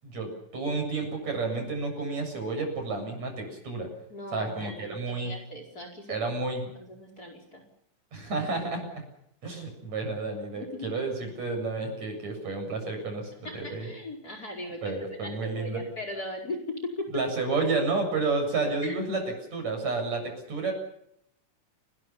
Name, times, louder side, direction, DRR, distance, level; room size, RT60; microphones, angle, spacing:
voice 1, 0.0-3.9 4.3-5.3 6.1-6.7 8.1-9.0 9.4-13.9 14.8-15.8 17.1-19.2 19.5-20.7, right 3 dB, 60° right, 5 dB, 8.8 m, -31 dB
voice 2, 4.1-6.2 6.7-7.6 10.6-10.9 13.4-17.2 18.8-19.0, left 1 dB, 30° left, 4 dB, 5.3 m, -38 dB
30.0 x 21.5 x 5.9 m, 0.75 s
omnidirectional pair, 3.6 m